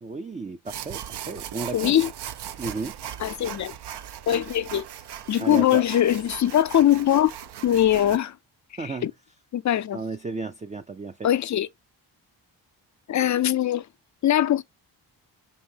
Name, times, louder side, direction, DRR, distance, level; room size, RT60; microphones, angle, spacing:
voice 1, 0.0-2.1 2.6-2.9 5.4-5.8 8.8-9.1 9.9-11.3, right 4 dB, 15° right, 0.4 m, -33 dB
sound 1, 0.6-8.2, right 10 dB, 60° right, 0.6 m, -38 dB
voice 2, 1.7-2.1 3.2-3.7 4.3-4.8 5.3-7.3 7.6-8.3 9.0-9.1 9.5-10.0 11.2-11.7 13.1-13.8 14.2-14.6, left 11 dB, 40° left, 0.4 m, -21 dB
5.5 x 2.7 x 2.7 m
cardioid pair, 50°, 45 cm